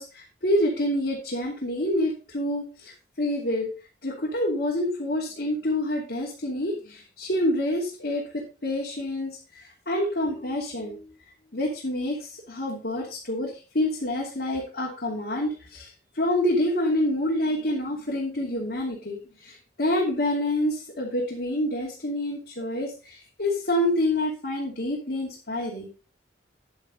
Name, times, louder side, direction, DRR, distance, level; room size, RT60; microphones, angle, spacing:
voice 1, 0.0-3.7 4.0-11.1 11.5-15.9 16.1-26.0, left 1 dB, 60° left, -5 dB, 2.8 m, -27 dB
10.0 x 8.0 x 4.0 m, 0.33 s
head